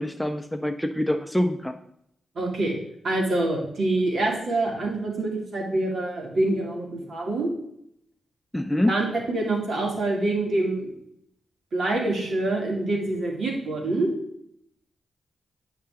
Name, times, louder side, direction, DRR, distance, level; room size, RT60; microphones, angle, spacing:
voice 1, 0.0-1.8 8.5-8.9, left 1 dB, 5° left, 7 dB, 0.6 m, -25 dB
voice 2, 2.4-2.7 3.0-7.5 8.9-10.9 11.7-14.1, right 2 dB, 65° right, -1 dB, 2.7 m, -26 dB
9.9 x 5.8 x 3.7 m, 0.74 s
cardioid pair, 75°, 0 cm